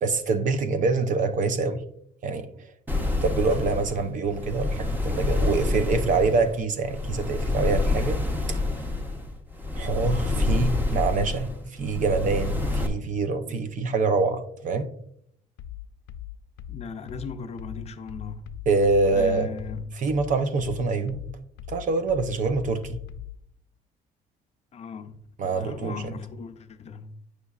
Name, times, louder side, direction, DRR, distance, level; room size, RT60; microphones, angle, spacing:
voice 1, 0.0-1.8 2.2-2.5 3.2-8.2 8.5-8.8 9.7-14.9 18.7-19.5 20.0-21.2 21.7-23.0 25.4-26.1, right 3 dB, 50° right, 0.6 m, -25 dB
sound 1, 2.9-12.9, left 2 dB, 10° right, 0.9 m, -27 dB
sound 2, 15.6-23.4, left 12 dB, 85° left, 0.4 m, -40 dB
voice 2, 16.7-18.4 19.1-20.0 24.7-27.2, left 5 dB, 40° left, 0.6 m, -38 dB
8.2 x 6.1 x 2.4 m
cardioid pair, 110°, 17 cm